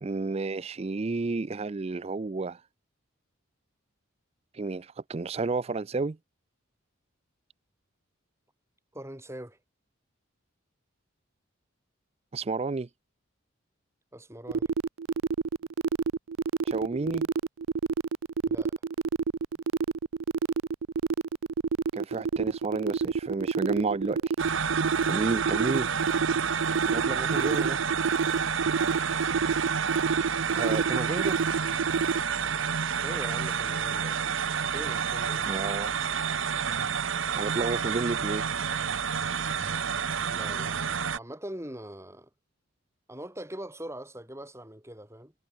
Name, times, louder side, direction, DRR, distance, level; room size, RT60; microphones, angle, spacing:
voice 1, 0.0-2.6 4.5-6.2 12.3-12.9 16.6-17.3 21.9-24.2 25.1-25.9 26.9-27.8 30.6-31.4 35.4-36.0 37.4-38.5, right 3 dB, 30° right, 0.4 m, -31 dB
voice 2, 8.9-9.6 14.1-14.7 18.5-18.7 33.0-34.3 34.7-35.5 40.3-40.9 41.2-42.3 43.1-45.3, right 1 dB, 15° right, 5.2 m, -42 dB
sound 1, 14.5-32.2, right 5 dB, 90° right, 0.5 m, -28 dB
sound 2, 24.4-41.2, right 6 dB, 70° right, 0.9 m, -29 dB
head